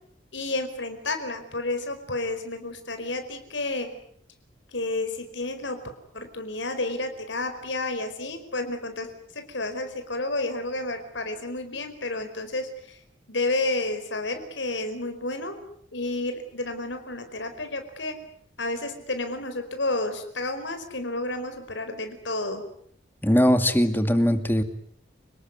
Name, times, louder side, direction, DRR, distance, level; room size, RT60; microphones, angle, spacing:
voice 1, 0.3-3.9 4.7-5.8 6.1-13.0 13.3-15.6 15.9-18.2 18.6-22.6, left 2 dB, 75° left, 7 dB, 4.9 m, -31 dB
voice 2, 23.2-24.6, equal, 10° left, 9 dB, 2.3 m, -20 dB
29.5 x 20.0 x 9.7 m, 0.66 s
head